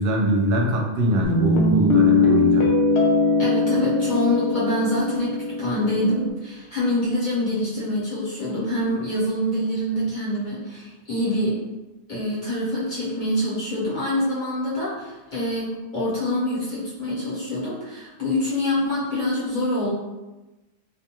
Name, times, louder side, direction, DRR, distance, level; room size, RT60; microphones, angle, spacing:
voice 1, 0.0-2.7, equal, 65° right, 0 dB, 0.8 m, -22 dB
Guitar, 1.2-6.3, left 3 dB, 80° left, 0.9 m, -21 dB
voice 2, 3.4-11.5 12.1-19.9, left 1 dB, 45° left, -9 dB, 1.1 m, -25 dB
2.5 x 2.3 x 2.8 m, 1.1 s
omnidirectional pair, 1.2 m